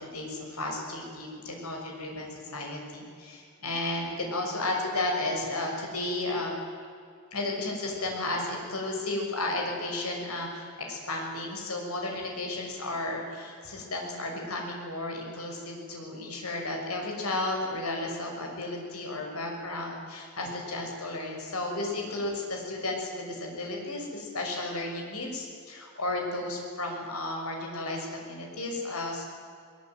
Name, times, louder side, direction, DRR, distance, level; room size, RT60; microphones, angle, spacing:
voice 1, 0.0-6.6 7.3-29.2, left 2 dB, 85° left, 1 dB, 6.3 m, -33 dB
22.0 x 21.5 x 9.5 m, 2.2 s
head